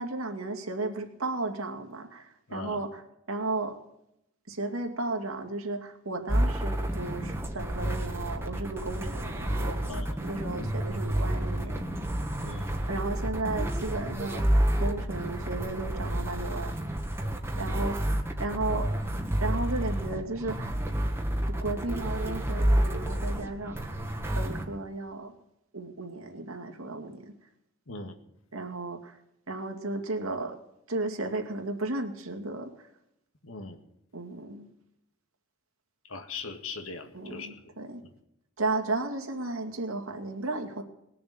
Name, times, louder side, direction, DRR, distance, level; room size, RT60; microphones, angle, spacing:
voice 1, 0.0-3.8 4.5-11.8 12.9-16.7 17.6-18.1 18.4-18.9 19.4-20.8 21.5-24.0 24.3-25.3 25.7-27.3 28.5-29.2 29.5-30.6 30.9-32.9 34.1-34.7 37.1-38.0 38.6-40.8, right 2 dB, 80° right, 4 dB, 2.4 m, -34 dB
voice 2, 2.5-2.8 9.9-10.1 12.4-12.7 27.9-28.1 33.4-33.8 36.1-37.5, left 3 dB, 75° left, 7 dB, 1.8 m, -39 dB
sound 1, 6.3-24.7, right 1 dB, 10° right, 1.4 m, -29 dB
20.5 x 7.0 x 9.4 m, 0.80 s
head